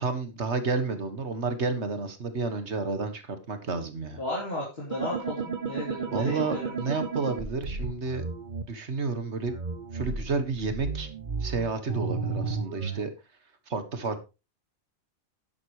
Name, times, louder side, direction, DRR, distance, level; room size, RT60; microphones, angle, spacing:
voice 1, 0.0-4.2 6.1-8.3 8.7-9.5 9.9-11.1 11.4-13.1 13.7-14.2, right 4 dB, 80° right, 1.9 m, -31 dB
voice 2, 4.2-6.7, left 1 dB, 65° left, 3.4 m, -34 dB
sound 1, 4.9-8.6 9.5-13.0, right 5 dB, 45° right, 1.2 m, -33 dB
11.5 x 10.5 x 3.1 m
omnidirectional pair, 1.1 m